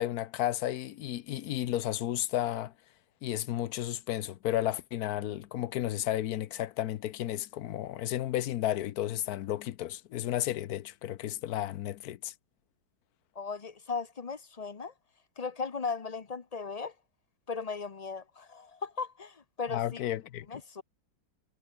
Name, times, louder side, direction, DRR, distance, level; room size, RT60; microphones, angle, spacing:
voice 1, 0.0-2.7 3.2-12.3 19.7-20.6, left 13 dB, 65° left, 1.1 m, -33 dB
voice 2, 13.4-14.9 15.4-16.9 17.5-20.0 20.5-20.8, left 5 dB, 35° left, 0.6 m, -37 dB
omnidirectional pair, 2.0 m